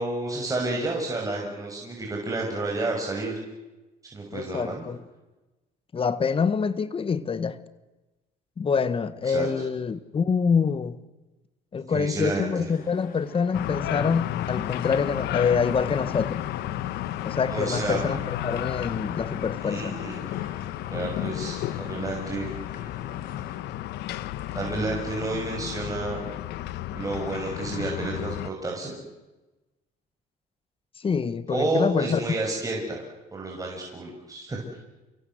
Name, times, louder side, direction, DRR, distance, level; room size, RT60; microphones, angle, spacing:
voice 1, 0.0-3.4 4.0-4.8 9.2-9.5 11.9-12.7 17.5-18.1 19.6-20.2 20.9-22.5 24.5-26.2 26.9-29.0 31.5-33.0 33.3-34.6, right 2 dB, 20° right, 6.6 m, -30 dB
voice 2, 4.3-5.0 5.9-7.6 8.6-11.0 11.7-16.4 17.2-20.0 31.0-32.2, left 6 dB, 35° left, 1.4 m, -26 dB
sound 1, 12.7-23.6, left 5 dB, 60° left, 6.9 m, -48 dB
sound 2, 13.5-28.5, left 13 dB, 80° left, 1.2 m, -32 dB
29.5 x 23.5 x 7.9 m
cardioid pair, 110°, 17 cm